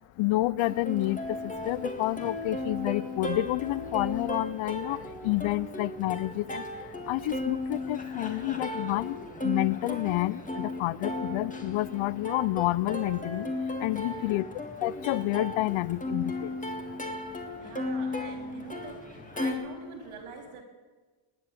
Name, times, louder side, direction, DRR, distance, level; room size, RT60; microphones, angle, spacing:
voice 1, 0.2-6.6 7.1-9.2 9.4-13.5 13.8-14.5 14.8-16.5, left 18 dB, 75° left, 21 dB, 0.6 m, -29 dB
Plucked string instrument, 0.6-19.5, left 2 dB, 15° left, 1.8 m, -35 dB
voice 2, 14.0-14.5 17.6-20.6, right 5 dB, 90° right, 3 dB, 3.8 m, -46 dB
19.5 x 7.8 x 9.1 m, 1.3 s
cardioid pair, 135°, 49 cm